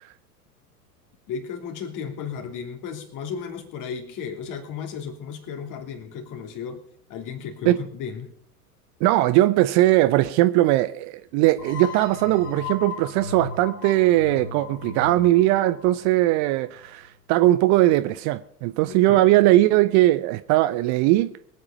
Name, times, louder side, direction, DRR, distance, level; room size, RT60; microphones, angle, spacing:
voice 1, 1.3-6.8 7.1-8.3 18.9-19.2, left 6 dB, 40° left, 5 dB, 3.0 m, -34 dB
voice 2, 9.0-21.3, right 16 dB, 40° right, 14 dB, 0.6 m, -19 dB
sound 1, 11.6-17.1, left 4 dB, 80° left, 2.4 m, -36 dB
23.0 x 8.7 x 5.1 m, 0.62 s
figure-of-eight pair, 85°, 47 cm